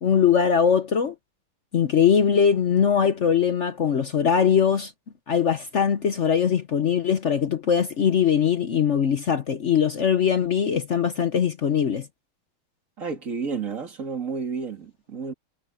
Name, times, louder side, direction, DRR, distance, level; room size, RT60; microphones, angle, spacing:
voice 1, 0.0-1.1 1.7-4.9 5.3-12.1, left 7 dB, 60° left, 0.7 m, -21 dB
voice 2, 13.0-15.3, right 5 dB, 40° right, 2.7 m, -31 dB
omnidirectional pair, 2.3 m